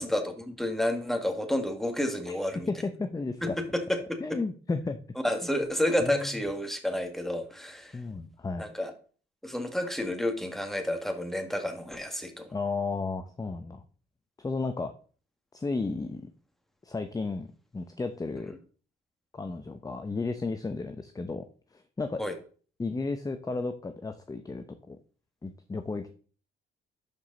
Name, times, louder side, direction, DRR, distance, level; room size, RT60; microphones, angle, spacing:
voice 1, 0.0-2.7 3.4-4.4 5.2-8.0 8.6-8.9 9.4-12.5 18.5-18.6 22.2-22.3, left 1 dB, ahead, 6 dB, 1.8 m, -30 dB
voice 2, 2.7-3.6 4.2-5.0 6.0-6.3 7.9-8.7 12.5-13.8 14.4-14.9 15.5-16.3 16.8-17.5 17.7-18.5 19.3-21.4 21.7-22.2 22.8-25.0 25.4-26.1, left 3 dB, 20° left, 8 dB, 0.7 m, -33 dB
11.5 x 5.0 x 4.0 m, 0.41 s
cardioid pair, 90°, 20 cm